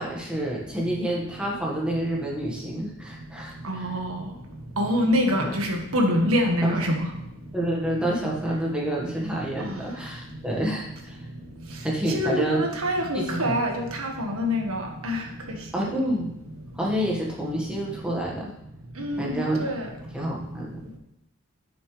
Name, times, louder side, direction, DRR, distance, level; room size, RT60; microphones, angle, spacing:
voice 1, 0.0-3.9 5.3-5.5 6.6-6.9 7.5-11.2 11.8-12.6 13.1-13.6 15.7-16.3 16.7-18.5 19.2-19.6 20.1-21.0, right 1 dB, 5° right, -3 dB, 1.6 m, -28 dB
voice 2, 3.6-4.1 4.8-7.1 12.1-15.2 15.7-15.9 19.0-19.8, equal, 80° right, 2 dB, 1.6 m, -25 dB
9.8 x 7.0 x 3.3 m, 0.82 s
head